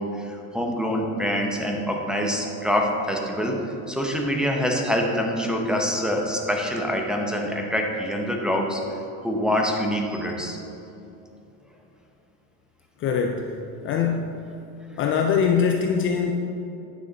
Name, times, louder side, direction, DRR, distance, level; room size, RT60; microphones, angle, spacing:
voice 1, 0.0-10.6 14.9-15.0, equal, ahead, 0 dB, 0.7 m, -25 dB
voice 2, 13.0-13.5 13.8-14.4 15.0-16.3, left 6 dB, 35° left, 3 dB, 0.4 m, -23 dB
9.4 x 6.3 x 4.0 m, 2.8 s
cardioid pair, 145°, 38 cm